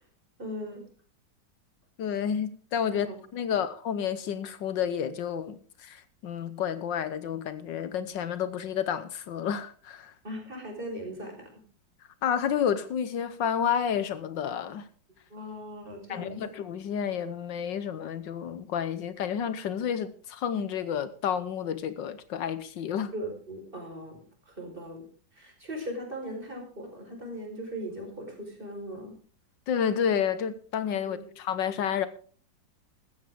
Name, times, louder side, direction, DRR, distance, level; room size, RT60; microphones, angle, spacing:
voice 1, 0.4-0.8 2.9-3.2 10.2-11.5 15.3-16.4 23.1-24.2 24.5-25.0 25.3-29.1 31.0-31.2, equal, 25° right, 4.9 m, -39 dB
voice 2, 2.0-10.1 12.2-14.9 16.1-23.1 29.7-32.1, left 8 dB, 75° left, 1.6 m, -30 dB
15.5 x 14.0 x 3.7 m
omnidirectional pair, 2.0 m